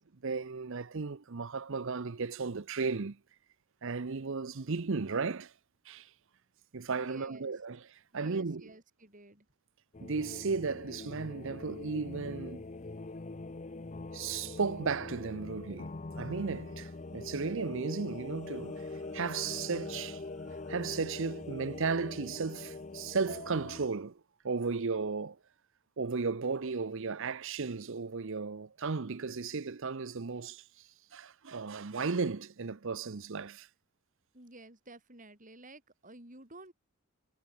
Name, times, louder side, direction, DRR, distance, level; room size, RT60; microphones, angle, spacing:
voice 1, 0.2-3.2 3.8-5.5 5.9-6.1 6.7-8.6 10.0-12.6 14.1-20.2 20.7-25.4 26.0-33.7, right 4 dB, 60° right, 0.7 m, -35 dB
voice 2, 6.9-7.5 8.1-9.5 34.3-36.7, right 2 dB, 35° right, 6.7 m, -52 dB
sound 1, 9.9-23.9, left 3 dB, 35° left, 0.7 m, -43 dB
head